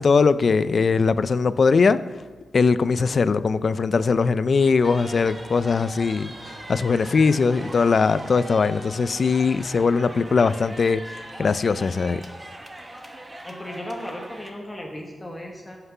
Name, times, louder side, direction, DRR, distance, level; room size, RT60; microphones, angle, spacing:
voice 1, 0.0-2.0 2.5-6.3 6.7-12.2, left 5 dB, 45° left, 15 dB, 0.3 m, -20 dB
sound 1, 4.5-9.9, right 2 dB, 40° right, 1.1 m, -45 dB
sound 2, 4.8-14.5, right 1 dB, 15° right, 0.9 m, -41 dB
voice 2, 13.4-15.8, left 1 dB, 15° left, 1 dB, 1.1 m, -36 dB
13.5 x 5.9 x 5.5 m, 1.4 s
wide cardioid pair, 170°, 0 cm